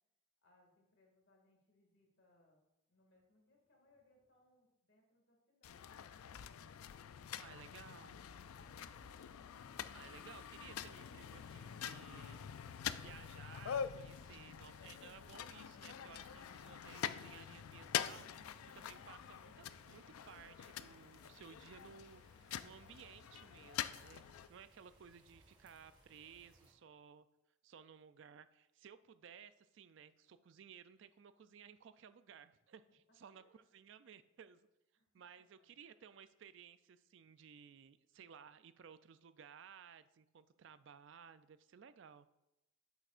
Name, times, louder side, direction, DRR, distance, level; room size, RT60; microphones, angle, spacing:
voice 1, 0.4-6.8 7.2-9.1 33.3-33.6 35.0-35.1 35.4-36.2, left 1 dB, 55° left, 0 dB, 2.1 m, -73 dB
sound 1, 5.6-24.5, left 9 dB, 90° left, 0.4 m, -46 dB
sound 2, 7.2-22.9, equal, 15° left, 1.8 m, -69 dB
voice 2, 7.4-8.2 9.9-27.3 27.6-34.7 35.1-42.3, right 7 dB, 60° right, 13 dB, 0.3 m, -58 dB
sound 3, 9.5-26.7, right 1 dB, 20° right, 1.3 m, -69 dB
8.9 x 8.0 x 2.5 m, 0.90 s
head